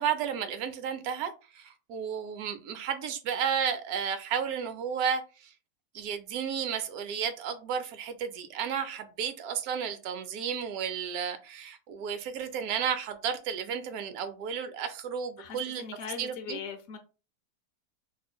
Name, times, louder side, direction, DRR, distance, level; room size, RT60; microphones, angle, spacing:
voice 1, 0.0-5.5 5.9-15.8 16.2-16.6, right 7 dB, 70° right, 1.0 m, -33 dB
voice 2, 15.4-17.0, left 6 dB, 70° left, 0.9 m, -40 dB
4.8 x 2.6 x 2.2 m
omnidirectional pair, 1.7 m